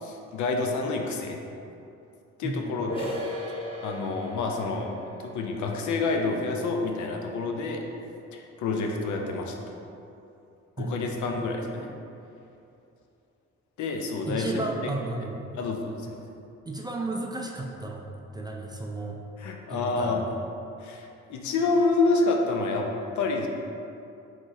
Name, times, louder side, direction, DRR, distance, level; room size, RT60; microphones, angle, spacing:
voice 1, 0.0-1.4 2.4-3.1 3.5-4.9 5.2-7.8 8.3-9.8 10.8-11.9 13.8-14.9 15.6-16.2 19.4-20.3 20.8-22.9 23.2-23.5, left 3 dB, 70° left, 2 dB, 0.6 m, -28 dB
voice 2, 2.4-2.9 10.8-11.1 14.3-15.4 16.7-18.1 18.3-19.2 19.7-20.4, right 2 dB, 15° right, 0 dB, 0.3 m, -33 dB
sound 1, 2.9-8.4, left 1 dB, 15° left, 0.8 m, -39 dB
3.7 x 3.1 x 3.8 m, 2.7 s
cardioid pair, 90°, 30 cm